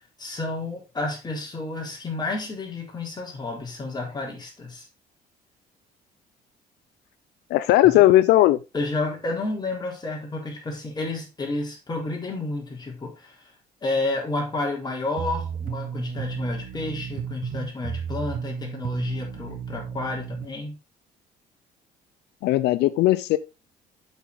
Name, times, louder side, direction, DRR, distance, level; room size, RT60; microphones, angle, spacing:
voice 1, 0.2-4.9 7.8-8.0 8.7-13.5 13.8-20.8, left 2 dB, 25° left, 3.8 m, -30 dB
voice 2, 7.5-8.6 22.4-23.4, left 15 dB, 85° left, 0.6 m, -17 dB
sound 1, 15.2-20.5, right 8 dB, 55° right, 1.0 m, -33 dB
8.2 x 6.1 x 3.9 m
cardioid pair, 110°, 17 cm